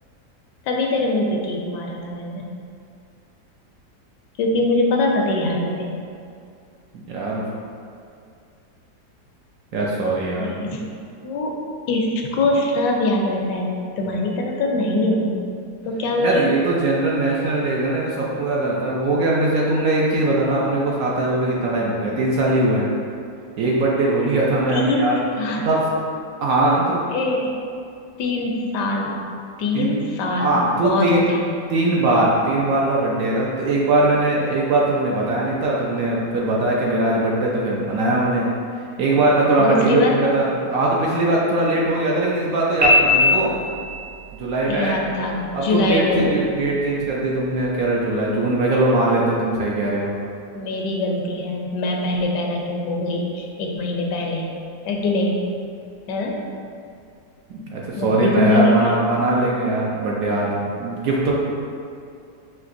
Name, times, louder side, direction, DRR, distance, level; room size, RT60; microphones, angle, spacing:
voice 1, 0.7-2.4 4.4-5.9 10.4-10.9 11.2-11.6 11.9-13.7 14.0-15.3 15.9-16.5 24.7-25.7 27.1-27.5 28.2-29.1 29.6-31.4 39.6-40.1 44.7-46.3 50.5-54.5 54.8-55.4 56.1-56.3 58.0-58.9, left 2 dB, 80° left, 0 dB, 1.2 m, -22 dB
voice 2, 6.9-7.4 9.7-10.6 16.2-22.9 23.6-25.2 25.7-25.8 26.4-27.0 29.7-29.9 30.4-31.3 31.7-38.5 39.0-43.5 44.4-45.0 45.5-50.1 57.5-61.3, right 2 dB, 70° right, -4 dB, 0.9 m, -20 dB
Piano, 42.8-43.9, left 2 dB, 40° right, 0.7 m, -17 dB
5.8 x 2.8 x 2.5 m, 2.4 s
omnidirectional pair, 1.8 m